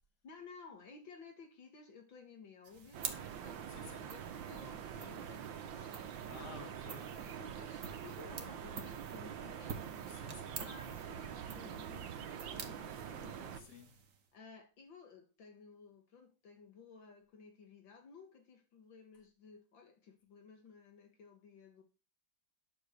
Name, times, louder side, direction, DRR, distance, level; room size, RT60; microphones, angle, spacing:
voice 1, 0.2-6.2 6.5-6.7 7.2-10.0 10.6-13.7 14.3-21.8, left 5 dB, 85° left, 2.4 m, -56 dB
sound 1, 2.6-14.3, right 6 dB, 45° right, 1.5 m, -50 dB
sound 2, 2.9-13.6, right 8 dB, 85° right, 1.7 m, -45 dB
voice 2, 3.7-4.1 6.3-7.3 10.1-10.7 13.5-14.0, left 6 dB, 60° left, 2.6 m, -54 dB
10.5 x 4.8 x 6.7 m
omnidirectional pair, 2.0 m